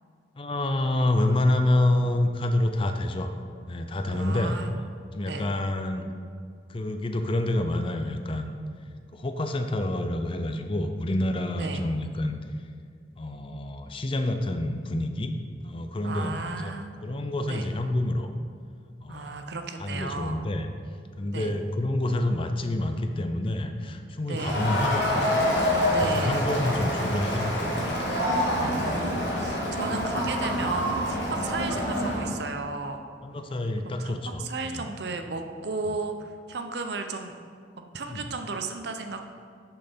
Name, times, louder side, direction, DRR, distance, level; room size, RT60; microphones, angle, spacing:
voice 1, 0.4-3.3 3.7-4.6 5.1-6.1 6.7-8.6 9.1-12.4 13.2-15.3 15.6-16.8 17.0-18.3 19.0-19.5 19.8-20.7 21.2-25.3 25.6-28.0 28.5-28.8 33.2-34.9 35.9-36.0 38.1-38.3, left 1 dB, 30° left, 6 dB, 0.5 m, -28 dB
voice 2, 4.1-4.7 5.3-5.5 11.6-11.8 16.0-16.9 17.5-17.7 19.1-20.4 21.3-21.5 24.3-24.6 25.9-26.4 28.6-33.0 33.8-37.4 37.9-39.2, right 3 dB, 65° right, 6 dB, 0.6 m, -34 dB
Crowd, 24.4-32.3, equal, 70° left, 1.9 m, -26 dB
6.5 x 6.2 x 5.3 m, 2.2 s
head